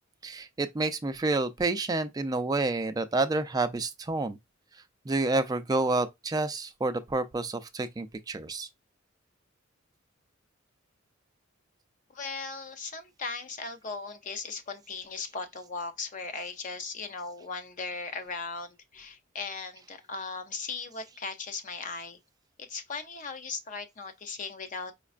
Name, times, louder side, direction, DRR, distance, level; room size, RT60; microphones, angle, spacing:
voice 1, 0.2-4.4 5.1-8.7, right 3 dB, 20° right, 0.3 m, -29 dB
voice 2, 12.1-22.2 22.6-24.9, left 4 dB, 40° left, 0.6 m, -38 dB
5.1 x 2.2 x 2.4 m
head